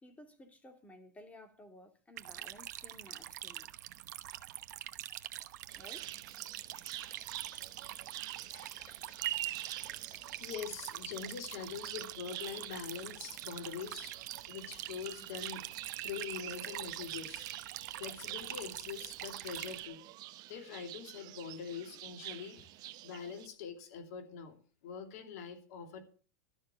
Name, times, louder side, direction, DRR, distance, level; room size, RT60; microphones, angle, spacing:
voice 1, 0.0-3.7 5.8-6.1, left 1 dB, 15° left, 2.6 m, -55 dB
sound 1, 2.2-19.8, right 14 dB, 70° right, 0.9 m, -45 dB
sound 2, 5.7-23.5, right 15 dB, 45° right, 0.7 m, -46 dB
sound 3, 6.1-11.1 11.6-11.9, left 2 dB, 40° left, 7.3 m, -63 dB
voice 2, 10.4-14.1 14.5-17.5 18.0-20.0 20.5-26.0, left 7 dB, 65° left, 2.7 m, -44 dB
12.5 x 6.6 x 8.2 m
hypercardioid pair, 110°, 9 cm